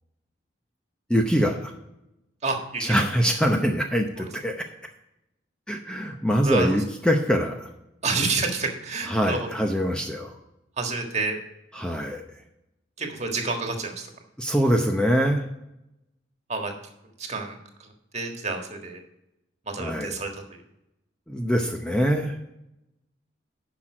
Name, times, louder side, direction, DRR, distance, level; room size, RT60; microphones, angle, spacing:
voice 1, 1.1-1.7 2.8-4.7 5.7-7.7 9.1-10.3 11.7-12.2 14.4-15.4 19.8-20.2 21.3-22.4, equal, 5° left, 2 dB, 0.7 m, -24 dB
voice 2, 2.4-3.1 4.2-4.3 6.4-6.8 8.0-9.5 10.8-11.4 13.0-14.1 16.5-16.7 17.2-19.0 19.6-20.6, right 3 dB, 35° right, 3 dB, 1.6 m, -29 dB
10.5 x 6.0 x 4.9 m, 0.87 s
head